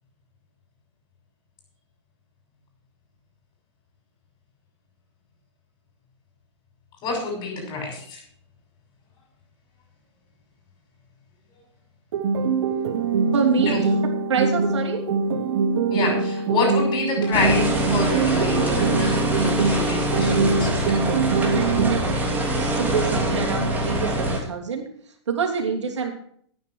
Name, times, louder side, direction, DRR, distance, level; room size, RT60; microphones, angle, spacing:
voice 1, 7.0-8.2 13.6-13.8 15.9-20.8, left 3 dB, 30° left, -2 dB, 6.5 m, -27 dB
sound 1, 12.1-22.1, right 4 dB, 70° right, 1.2 m, -23 dB
voice 2, 13.3-13.7 14.3-15.0 21.5-22.2 22.6-24.8 25.3-26.1, right 5 dB, 90° right, 1 dB, 3.0 m, -26 dB
sound 2, 17.3-24.4, right 1 dB, 10° right, 3.2 m, -24 dB
10.5 x 9.4 x 6.3 m, 0.62 s
hypercardioid pair, 130°, 14 cm